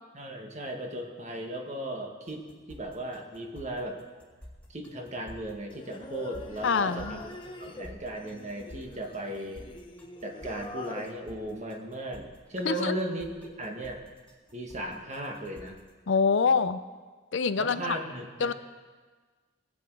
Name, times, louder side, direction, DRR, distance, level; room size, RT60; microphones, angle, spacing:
voice 1, 0.1-4.0 4.7-7.3 7.6-9.7 10.2-14.0 14.5-15.8 17.6-18.5, right 1 dB, 35° right, 2 dB, 1.5 m, -36 dB
sound 1, 2.3-15.9, left 1 dB, 5° left, 1.9 m, -51 dB
Singing, 5.7-11.1, left 2 dB, 25° left, 0.9 m, -44 dB
voice 2, 6.6-7.2 12.6-12.9 16.1-16.8 17.3-18.0 18.4-18.5, left 5 dB, 60° left, 12 dB, 0.5 m, -25 dB
21.0 x 9.0 x 4.7 m, 1.4 s
head